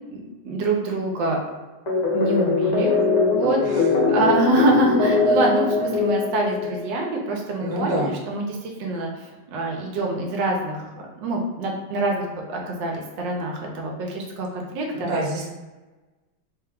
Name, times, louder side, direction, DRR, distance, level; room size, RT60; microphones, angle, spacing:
voice 1, 0.1-1.4 2.1-2.9 3.3-10.8 11.2-15.1, right 2 dB, 90° right, 0 dB, 1.4 m, -25 dB
sound 1, 1.9-7.0, left 3 dB, 40° left, 0.6 m, -21 dB
voice 2, 7.6-8.1 14.9-15.5, right 1 dB, 55° right, -3 dB, 1.3 m, -27 dB
4.1 x 2.2 x 3.6 m, 1.2 s
omnidirectional pair, 2.0 m